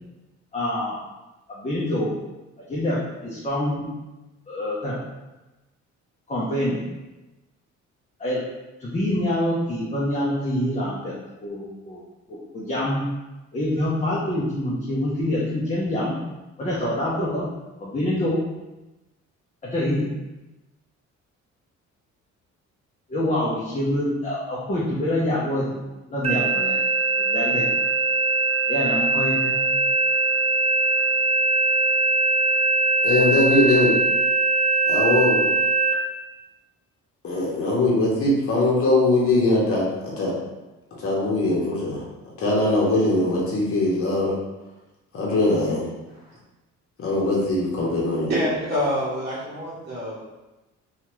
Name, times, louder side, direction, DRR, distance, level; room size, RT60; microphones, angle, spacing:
voice 1, 0.5-1.0 1.5-2.2 2.7-3.9 4.5-5.0 6.3-6.8 8.2-8.4 8.8-11.1 11.4-12.0 12.3-13.0 13.5-16.1 16.6-17.5 17.8-18.4 19.6-20.1 23.1-25.8 26.1-27.8 28.7-29.6, left 1 dB, 25° left, -6 dB, 0.7 m, -26 dB
sound 1, 26.2-35.9, right 3 dB, 20° right, 0.6 m, -21 dB
voice 2, 33.0-33.9 34.9-35.5 37.2-40.3 41.0-42.0 42.4-44.3 45.1-45.9 47.0-48.4, left 2 dB, 50° left, -5 dB, 1.0 m, -21 dB
voice 3, 48.3-50.2, equal, 35° right, -10 dB, 1.0 m, -26 dB
2.8 x 2.4 x 3.0 m, 1.0 s
cardioid pair, 90°, 30 cm